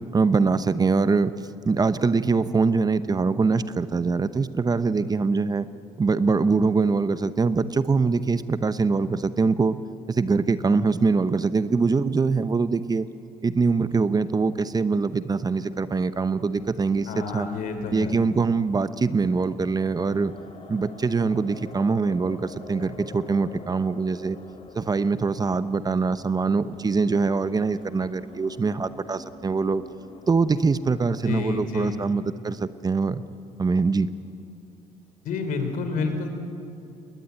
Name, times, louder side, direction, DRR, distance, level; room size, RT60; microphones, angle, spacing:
voice 1, 0.1-1.3 1.6-5.7 6.0-9.8 10.1-13.1 13.4-17.5 17.9-20.3 20.7-24.4 24.7-29.8 30.3-33.2 33.6-34.1, right 4 dB, 30° right, 13 dB, 0.8 m, -23 dB
sound 1, 15.6-32.3, left 4 dB, 40° left, 2.8 m, -48 dB
voice 2, 17.1-18.2 31.2-32.0 35.2-36.3, left 4 dB, 75° left, 6 dB, 3.4 m, -29 dB
21.0 x 19.5 x 9.4 m, 2.6 s
supercardioid pair, 75°, 14 cm